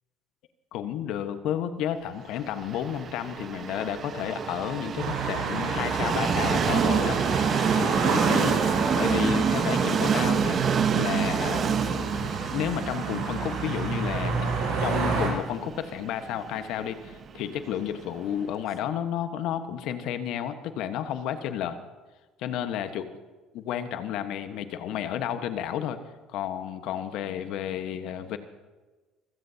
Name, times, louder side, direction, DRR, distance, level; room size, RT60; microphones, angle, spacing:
voice 1, 0.7-7.2 7.7-8.6 8.9-10.6 10.9-14.4 14.8-21.8 22.4-23.1 23.5-26.0 26.3-28.4, left 10 dB, 70° left, 9 dB, 1.3 m, -31 dB
Train, 2.5-18.4, right 6 dB, 45° right, 1.2 m, -28 dB
sound 1, 5.0-15.3, right 4 dB, 70° right, 5.6 m, -30 dB
26.0 x 16.5 x 2.8 m, 1.2 s
hypercardioid pair, 70°, 0 cm